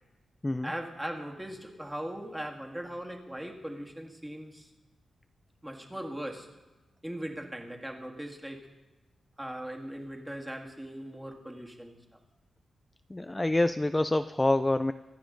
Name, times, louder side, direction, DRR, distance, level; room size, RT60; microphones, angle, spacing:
voice 1, 0.6-4.7 5.6-6.5 7.0-8.7 9.4-12.2 13.3-13.4, right 1 dB, 10° right, 2 dB, 2.0 m, -39 dB
voice 2, 13.1-14.9, left 2 dB, 15° left, 11 dB, 0.4 m, -26 dB
25.5 x 9.4 x 3.9 m, 1.2 s
cardioid pair, 85°, 0 cm